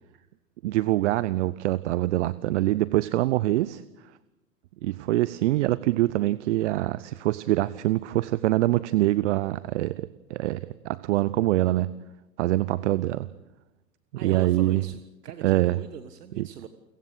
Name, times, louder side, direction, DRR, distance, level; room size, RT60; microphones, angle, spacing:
voice 1, 0.6-3.8 4.8-11.9 12.4-13.3 14.2-14.8 15.4-15.8 16.4-16.5, right 16 dB, 45° right, 18 dB, 0.7 m, -24 dB
voice 2, 14.1-16.7, right 8 dB, 70° right, 9 dB, 1.5 m, -41 dB
29.5 x 15.0 x 6.5 m, 1.0 s
figure-of-eight pair, 110°, 49 cm